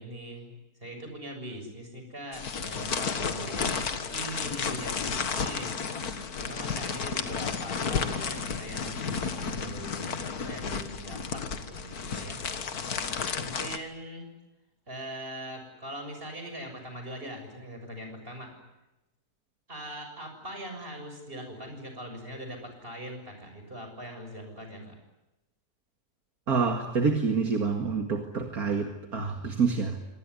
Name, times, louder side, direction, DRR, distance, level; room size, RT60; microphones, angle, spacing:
voice 1, 0.0-12.5 13.4-14.3 14.9-18.5 19.7-25.0, equal, 35° right, 5 dB, 7.1 m, -41 dB
sound 1, 2.3-13.8, left 5 dB, 70° left, 2.1 m, -32 dB
voice 2, 26.5-30.0, right 5 dB, 65° right, 4 dB, 2.5 m, -27 dB
26.0 x 19.5 x 9.9 m, 0.97 s
omnidirectional pair, 1.7 m